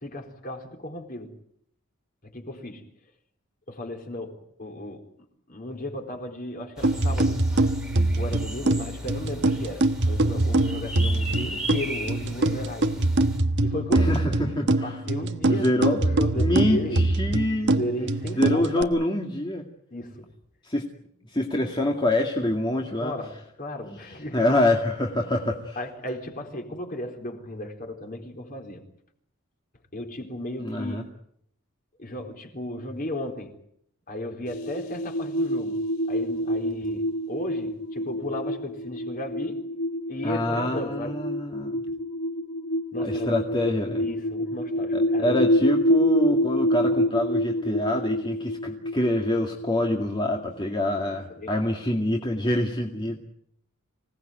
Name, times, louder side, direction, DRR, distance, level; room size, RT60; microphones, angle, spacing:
voice 1, 0.0-1.4 2.2-2.9 3.7-5.0 5.5-7.4 8.1-13.0 13.6-14.3 14.8-17.1 17.7-18.9 19.9-20.3 22.9-24.4 25.8-28.8 29.9-31.0 32.0-33.6 34.1-35.8 36.1-39.7 40.1-41.2 42.9-43.4 43.6-43.7 44.0-45.6 50.7-51.8, left 1 dB, 40° left, 4.0 m, -35 dB
sound 1, 6.8-13.4, right 1 dB, 5° right, 2.7 m, -37 dB
sound 2, 6.8-18.8, right 2 dB, 50° right, 1.3 m, -24 dB
voice 2, 13.9-15.0 15.5-16.0 16.3-17.8 18.4-19.6 20.6-20.8 21.3-23.1 24.1-25.8 30.6-31.0 40.2-41.8 43.0-44.0 44.9-53.2, left 1 dB, 20° left, 2.2 m, -26 dB
sound 3, 34.5-50.8, equal, 85° left, 1.6 m, -27 dB
26.0 x 18.0 x 9.2 m
head